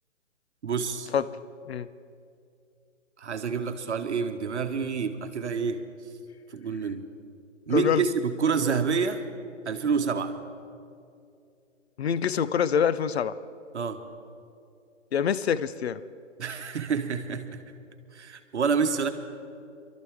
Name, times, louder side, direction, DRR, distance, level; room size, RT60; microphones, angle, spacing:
voice 1, 0.6-1.1 3.2-5.8 6.5-7.1 7.7-9.2 9.7-10.4 13.7-14.0 16.4-17.6 18.1-19.1, right 5 dB, 65° right, 7 dB, 1.1 m, -28 dB
voice 2, 7.7-8.0 12.0-13.3 15.1-16.0, left 8 dB, 55° left, 15 dB, 0.5 m, -25 dB
23.5 x 12.5 x 3.5 m, 2.5 s
hypercardioid pair, 170°, 38 cm